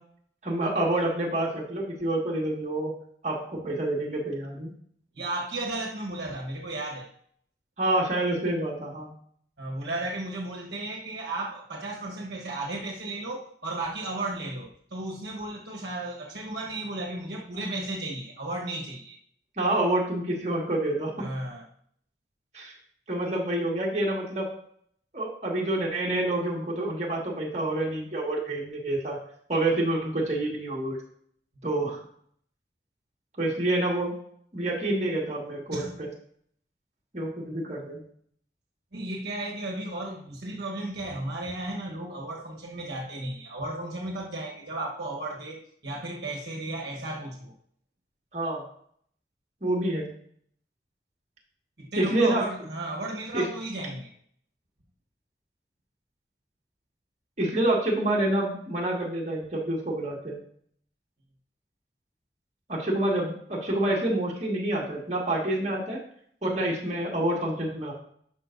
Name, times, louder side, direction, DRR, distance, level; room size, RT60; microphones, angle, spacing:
voice 1, 0.4-2.9 3.2-4.7 7.8-9.1 19.6-21.1 22.5-22.7 23.1-24.5 25.1-29.2 29.5-31.0 31.6-32.0 33.4-34.1 34.5-36.1 37.1-38.0 48.3-48.6 49.6-50.1 52.0-52.4 53.3-53.5 57.4-60.4 62.7-66.0 66.4-67.9, right 1 dB, 40° right, -3 dB, 1.8 m, -27 dB
voice 2, 5.1-7.1 9.6-19.2 21.2-21.7 35.7-36.0 38.9-47.5 51.8-54.1, right 2 dB, 75° right, -1 dB, 1.2 m, -34 dB
11.5 x 5.5 x 2.6 m, 0.63 s
head